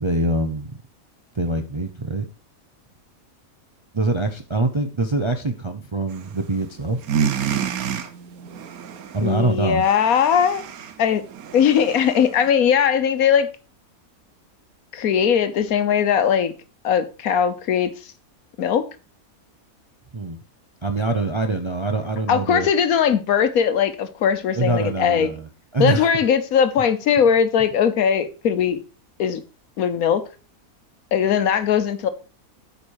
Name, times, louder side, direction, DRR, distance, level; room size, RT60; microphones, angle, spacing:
voice 1, 0.0-0.8 1.4-2.3 3.9-7.0 9.1-9.8 20.1-20.4 20.8-22.7 24.5-26.1, right 2 dB, 35° right, 0.4 m, -24 dB
sound 1, 6.1-6.6 6.9-12.5, right 8 dB, 85° right, 1.3 m, -29 dB
voice 2, 9.2-10.6 11.0-11.2 11.5-13.5 14.9-16.5 16.8-18.1 18.6-18.8 22.3-25.3 25.8-28.8 29.2-29.4 29.8-30.2 31.1-32.1, left 8 dB, 80° left, 1.3 m, -19 dB
8.5 x 5.3 x 4.7 m
omnidirectional pair, 1.5 m